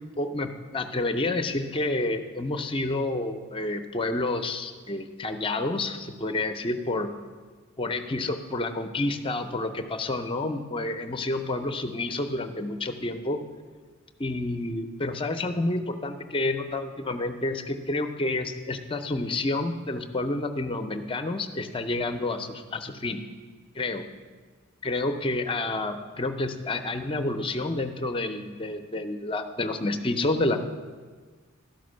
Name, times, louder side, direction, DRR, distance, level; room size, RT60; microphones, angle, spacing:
voice 1, 0.1-7.1 7.8-13.4 14.2-23.2 23.7-24.0 24.8-30.6, left 2 dB, 25° left, 8 dB, 0.5 m, -29 dB
12.0 x 5.2 x 6.4 m, 1.5 s
head